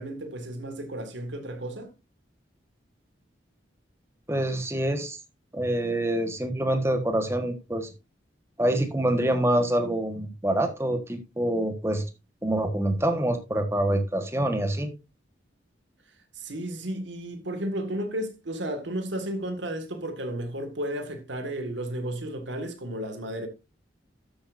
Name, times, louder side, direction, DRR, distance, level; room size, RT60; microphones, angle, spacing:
voice 1, 0.0-1.9 16.3-23.5, right 1 dB, 80° right, 1.9 m, -33 dB
voice 2, 4.3-5.2 5.5-7.9 8.6-12.0 12.4-14.9, right 1 dB, 15° right, 1.4 m, -26 dB
12.5 x 8.6 x 2.6 m
head